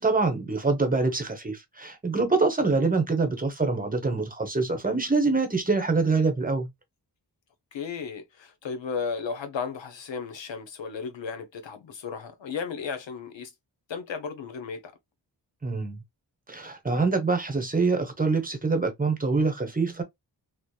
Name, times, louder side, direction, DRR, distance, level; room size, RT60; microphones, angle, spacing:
voice 1, 0.0-6.7 15.6-16.0 16.5-20.0, right 3 dB, 20° right, 0.8 m, -25 dB
voice 2, 7.7-13.5 13.9-14.8, left 5 dB, 85° left, 0.8 m, -34 dB
2.9 x 2.0 x 2.2 m
cardioid pair, 65°, 44 cm